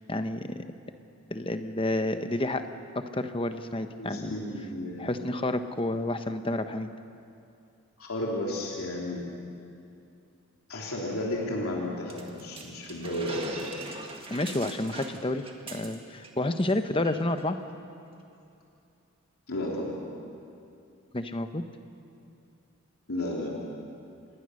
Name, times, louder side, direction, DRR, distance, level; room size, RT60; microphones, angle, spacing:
voice 1, 0.1-0.6 1.3-2.6 2.9-4.3 5.0-6.9 14.3-17.6 21.1-21.6, left 1 dB, 25° left, 8 dB, 0.9 m, -30 dB
voice 2, 4.0-5.3 8.0-9.2 10.7-13.7 19.5-19.9 23.1-23.6, left 1 dB, 80° left, -3 dB, 3.1 m, -33 dB
sound 1, 12.1-16.3 16.6-16.7 17.0-17.4, right 3 dB, 25° right, 1.8 m, -42 dB
27.0 x 20.0 x 6.5 m, 2.5 s
head